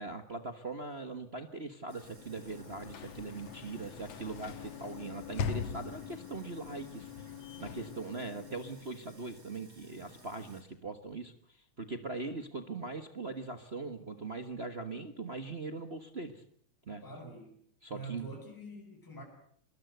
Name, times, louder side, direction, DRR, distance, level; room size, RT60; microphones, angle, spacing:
voice 1, 0.0-16.4 16.9-17.0 17.8-18.3, right 3 dB, 45° right, 7 dB, 0.7 m, -41 dB
Sink (filling or washing), 1.9-10.6, right 2 dB, 60° right, 9.0 m, -57 dB
Sliding door / Slam, 2.0-9.0, left 7 dB, 60° left, 2.4 m, -42 dB
voice 2, 17.0-17.6 17.9-19.2, right 2 dB, 5° left, 1 dB, 6.1 m, -45 dB
25.5 x 21.5 x 8.0 m, 0.64 s
omnidirectional pair, 3.5 m